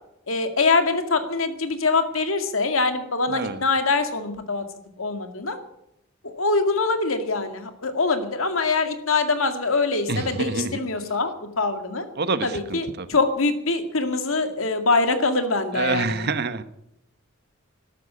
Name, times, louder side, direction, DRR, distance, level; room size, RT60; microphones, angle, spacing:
voice 1, 0.3-4.6 5.0-5.6 6.2-11.3 11.6-12.1 12.4-16.3, left 3 dB, 80° left, 7 dB, 2.1 m, -23 dB
voice 2, 3.3-3.6 10.1-10.8 12.2-13.1 15.7-16.6, right 3 dB, 50° right, 12 dB, 1.1 m, -27 dB
13.0 x 12.5 x 8.7 m, 0.80 s
head